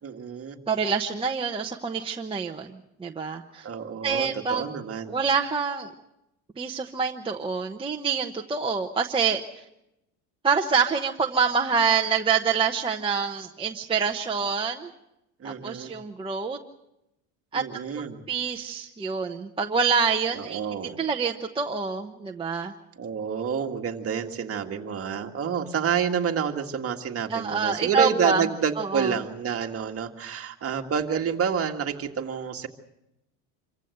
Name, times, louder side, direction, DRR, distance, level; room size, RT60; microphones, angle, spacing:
voice 1, 0.0-0.6 3.6-5.2 15.4-15.9 17.5-18.2 20.3-21.0 23.0-32.7, right 7 dB, 30° right, 3 dB, 1.9 m, -29 dB
voice 2, 0.7-3.7 4.0-4.6 5.1-5.9 6.6-9.6 10.4-14.9 15.4-16.6 17.5-20.6 21.0-22.7 27.3-28.4 28.8-29.1, right 5 dB, 10° right, 1 dB, 1.0 m, -26 dB
26.5 x 15.5 x 7.9 m, 0.87 s
cardioid pair, 130°, 43 cm